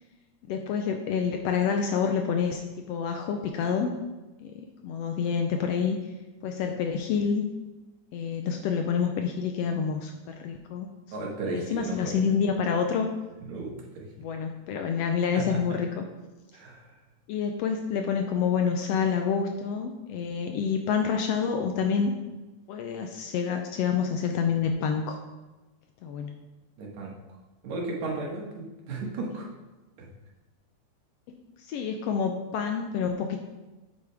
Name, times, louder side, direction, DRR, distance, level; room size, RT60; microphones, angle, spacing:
voice 1, 0.5-2.6 2.9-3.9 4.4-4.6 4.8-6.0 6.4-7.5 8.1-10.9 11.2-13.1 14.2-16.0 17.3-22.1 22.7-25.2 26.0-26.3 31.3-33.4, left 6 dB, 75° left, 4 dB, 1.5 m, -28 dB
voice 2, 11.1-12.3 13.4-14.1 15.3-15.6 16.5-16.9 26.8-27.1 27.6-29.5 30.0-30.1, right 3 dB, 70° right, -2 dB, 2.8 m, -35 dB
8.5 x 8.1 x 3.4 m, 1.1 s
omnidirectional pair, 3.3 m